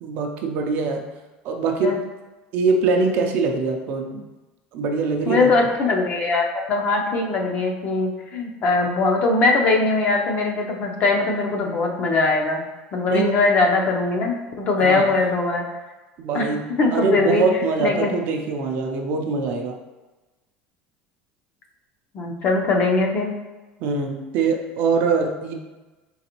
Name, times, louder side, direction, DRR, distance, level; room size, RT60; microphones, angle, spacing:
voice 1, 0.0-1.1 1.4-2.0 2.5-4.2 4.7-5.5 13.1-13.3 14.8-15.1 16.2-19.8 23.8-25.5, right 4 dB, 45° right, 3 dB, 0.5 m, -23 dB
voice 2, 5.3-12.6 12.9-15.6 16.3-16.5 16.8-17.4 17.8-18.1 22.1-23.3, left 3 dB, 35° left, 1 dB, 0.6 m, -21 dB
4.2 x 3.9 x 2.9 m, 1.2 s
cardioid pair, 165°, 4 cm